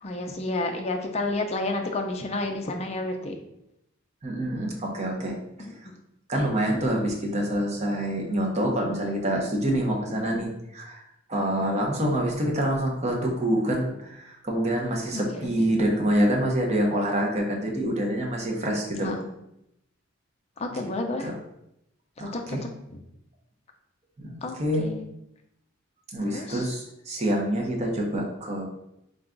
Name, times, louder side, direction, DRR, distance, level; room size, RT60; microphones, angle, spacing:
voice 1, 0.0-3.3 5.6-5.7 10.3-10.5 11.5-11.8 15.1-15.7 19.0-19.3 20.6-21.3 22.2-22.6 22.9-23.0 24.4-25.1 26.2-26.7, left 2 dB, 30° left, 3 dB, 0.4 m, -31 dB
voice 2, 4.2-5.4 5.8-5.9 6.3-11.0 11.3-19.2 20.7-20.9 21.2-21.3 22.2-22.6 24.2-24.8 26.1-28.6, right 1 dB, 35° right, 0 dB, 0.7 m, -26 dB
3.8 x 2.3 x 3.7 m, 0.82 s
head